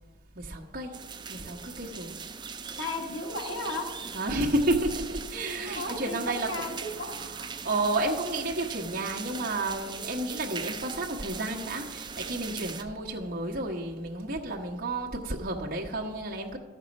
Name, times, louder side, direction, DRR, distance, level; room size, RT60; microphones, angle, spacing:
voice 1, 0.3-1.0 1.3-2.2 4.1-16.6, right 2 dB, 50° right, -2 dB, 1.2 m, -31 dB
sound 1, 0.9-12.8, right 6 dB, 25° right, 0.4 m, -40 dB
voice 2, 2.7-3.9 5.6-7.1, left 2 dB, 90° left, 2 dB, 1.6 m, -34 dB
13.0 x 6.5 x 5.2 m, 1.4 s
head